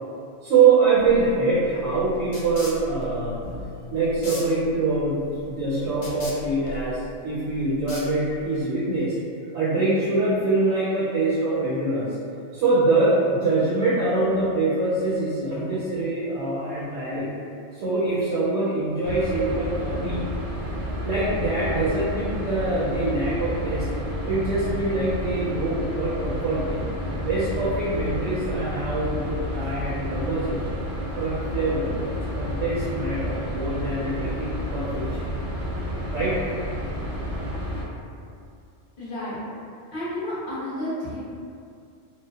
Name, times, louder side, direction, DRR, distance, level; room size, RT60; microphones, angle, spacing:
voice 1, 0.4-5.2 5.4-9.1 9.5-12.2 12.5-17.3 17.7-20.2 21.0-23.9 24.3-26.8 27.1-30.7 31.2-35.2 36.1-36.4, right 3 dB, 75° right, -11 dB, 1.1 m, -24 dB
sound 1, 1.0-8.6, equal, 85° left, 1.0 m, -39 dB
sound 2, 19.0-37.8, equal, 60° right, 0.6 m, -30 dB
voice 2, 39.0-39.5 39.9-41.2, left 1 dB, 45° left, -10 dB, 0.9 m, -31 dB
2.6 x 2.1 x 2.3 m, 2.4 s
omnidirectional pair, 1.3 m